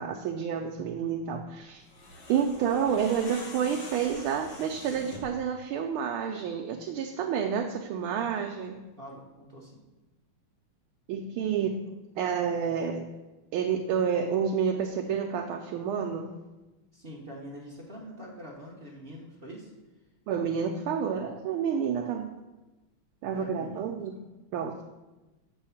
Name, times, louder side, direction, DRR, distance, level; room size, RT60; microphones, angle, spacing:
voice 1, 0.0-1.8 2.3-8.8 11.1-11.8 12.2-13.1 13.5-16.3 20.3-22.3 23.2-24.1 24.5-24.8, right 7 dB, 80° right, 4 dB, 1.4 m, -29 dB
sound 1, 1.8-5.4, left 2 dB, 55° left, 1.6 m, -45 dB
voice 2, 9.0-9.8 16.9-19.7 22.0-22.1 23.3-23.8, equal, 45° right, -3 dB, 0.7 m, -44 dB
7.0 x 4.7 x 5.6 m, 1.1 s
omnidirectional pair, 2.4 m